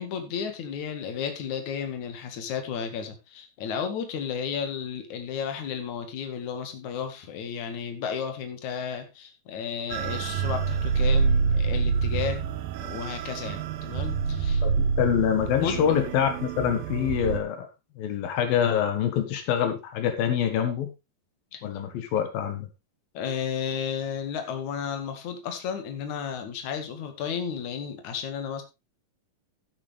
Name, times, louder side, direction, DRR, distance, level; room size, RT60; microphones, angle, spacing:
voice 1, 0.0-12.4 12.8-14.6 15.6-15.9 21.5-21.7 23.1-28.6, left 7 dB, 60° left, 6 dB, 3.2 m, -33 dB
sound 1, 9.9-17.4, right 5 dB, 85° right, 2.8 m, -27 dB
voice 2, 14.6-17.7 18.0-20.9 21.6-22.7, left 9 dB, 85° left, 8 dB, 3.4 m, -25 dB
12.0 x 10.5 x 3.5 m, 0.24 s
omnidirectional pair, 4.0 m